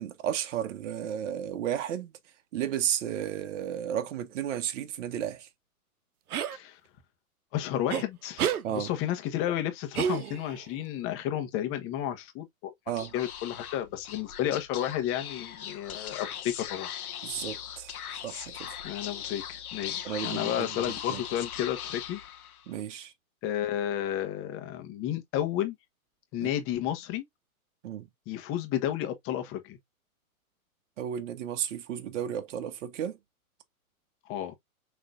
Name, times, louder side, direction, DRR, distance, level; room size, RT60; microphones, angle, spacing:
voice 1, 0.0-2.1 2.5-5.5 8.6-8.9 12.9-13.1 17.2-18.0 18.2-18.8 20.0-20.8 21.1-21.2 22.7-23.1 26.4-26.5 27.8-28.1 31.0-33.2, right 10 dB, 55° right, 1.2 m, -33 dB
sound 1, 6.3-6.6 7.9-8.0 8.4-8.6 9.9-10.6, right 8 dB, 85° right, 0.8 m, -29 dB
voice 2, 6.5-6.8 7.5-12.7 13.1-16.9 18.8-22.2 23.4-25.7 26.3-27.2 28.3-29.8 34.2-34.5, left 11 dB, 30° left, 1.2 m, -32 dB
Speech / Whispering, 12.9-22.7, left 9 dB, 80° left, 1.4 m, -39 dB
6.3 x 3.1 x 2.5 m
hypercardioid pair, 135°, 44 cm